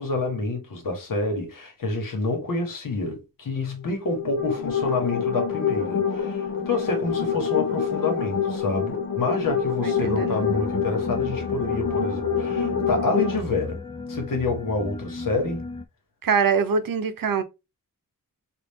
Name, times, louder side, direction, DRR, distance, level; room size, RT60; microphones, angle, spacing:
voice 1, 0.0-13.8 14.1-15.7, left 3 dB, 70° left, 1.5 m, -28 dB
sound 1, 3.9-13.4, left 6 dB, 50° left, 0.8 m, -26 dB
voice 2, 9.8-10.4 16.2-17.4, right 6 dB, 75° right, 0.8 m, -23 dB
sound 2, 10.0-15.8, left 3 dB, 15° left, 0.3 m, -36 dB
6.0 x 2.5 x 3.6 m
wide cardioid pair, 140°, 34 cm